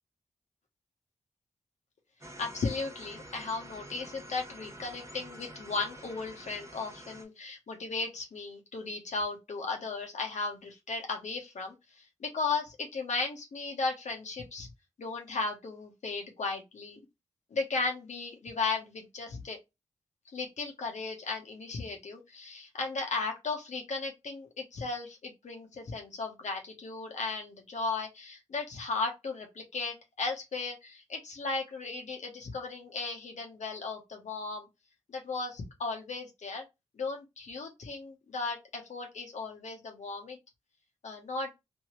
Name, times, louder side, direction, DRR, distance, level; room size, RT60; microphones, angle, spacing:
sound 1, 2.2-7.2, right 1 dB, 20° right, 1.3 m, -48 dB
voice 1, 2.4-14.7 15.0-17.0 17.5-19.6 20.3-34.7 35.1-36.7 37.0-40.4 41.0-41.5, left 3 dB, 70° left, 1.0 m, -36 dB
3.1 x 2.6 x 3.0 m
supercardioid pair, 40°, 13 cm